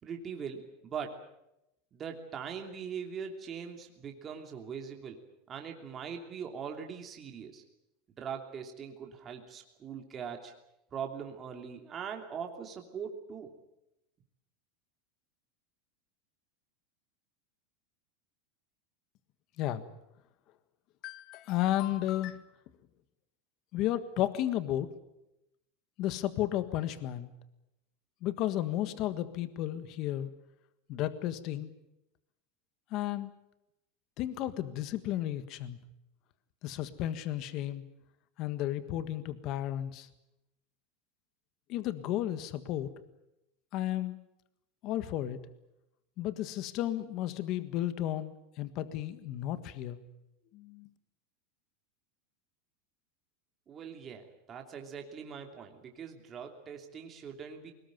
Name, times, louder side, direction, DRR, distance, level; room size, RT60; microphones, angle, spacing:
voice 1, 0.0-1.2 1.9-5.2 5.5-7.6 8.2-10.5 10.9-13.5 53.7-57.7, right 7 dB, 30° right, 3 dB, 3.0 m, -41 dB
voice 2, 21.0-22.4 23.7-24.9 26.0-27.3 28.2-30.3 30.9-31.7 32.9-33.3 34.2-35.8 36.6-37.8 38.4-40.1 41.7-42.9 43.7-44.2 44.8-45.4 46.2-50.0 50.5-50.9, left 13 dB, 50° left, 12 dB, 1.6 m, -33 dB
21.5 x 19.5 x 9.3 m, 0.86 s
supercardioid pair, 135°, 0 cm